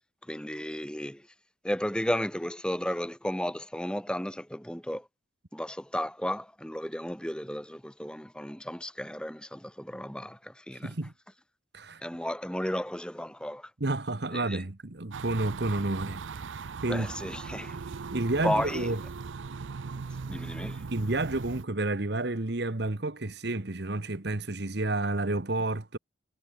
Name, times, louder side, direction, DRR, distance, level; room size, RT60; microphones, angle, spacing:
voice 1, 0.2-1.3 1.6-5.1 5.5-10.9 12.0-13.7 14.3-14.6 16.9-17.8 18.4-18.9 19.9-20.9, equal, 5° left, 2.3 m, -34 dB
voice 2, 10.7-11.1 11.7-12.0 13.8-17.1 18.1-19.0 20.9-26.0, right 2 dB, 55° right, 1.3 m, -30 dB
sound 1, 15.1-21.6, right 5 dB, 75° right, 0.5 m, -39 dB
head